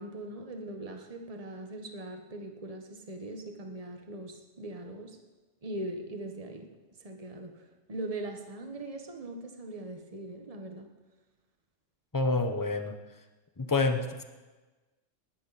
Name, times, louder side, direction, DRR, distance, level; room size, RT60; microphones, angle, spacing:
voice 1, 0.0-5.2 5.6-6.7 7.0-7.6 7.9-10.9, right 2 dB, 30° right, 3 dB, 1.4 m, -40 dB
voice 2, 12.1-12.9 13.6-14.2, left 3 dB, 15° left, 6 dB, 0.9 m, -28 dB
19.5 x 13.5 x 4.2 m, 1.2 s
omnidirectional pair, 1.3 m